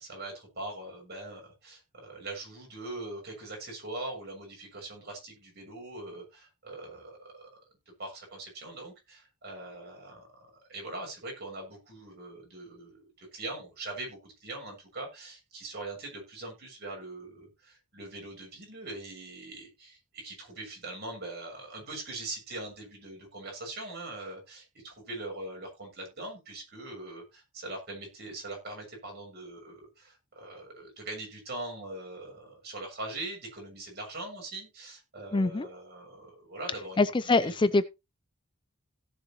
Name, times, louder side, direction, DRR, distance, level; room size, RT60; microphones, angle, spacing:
voice 1, 0.0-7.5 8.0-37.1 37.4-37.6, right 2 dB, 50° right, 7.2 m, -42 dB
voice 2, 35.3-35.7 37.0-37.9, left 3 dB, 20° left, 0.5 m, -24 dB
17.0 x 6.7 x 3.1 m
head